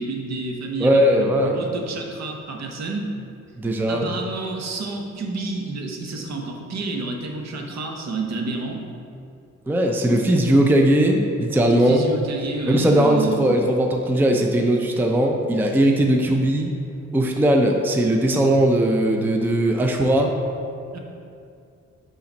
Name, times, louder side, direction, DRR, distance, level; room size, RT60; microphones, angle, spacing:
voice 1, 0.0-1.3 1.5-3.1 3.9-8.9 11.7-13.6 20.9-21.0, right 3 dB, 60° right, 1 dB, 0.9 m, -29 dB
voice 2, 0.8-1.6 3.6-4.1 9.7-12.0 12.7-16.7 17.1-20.3, right 1 dB, 5° right, 2 dB, 0.4 m, -19 dB
5.6 x 4.1 x 5.1 m, 2.5 s
cardioid pair, 115°, 30 cm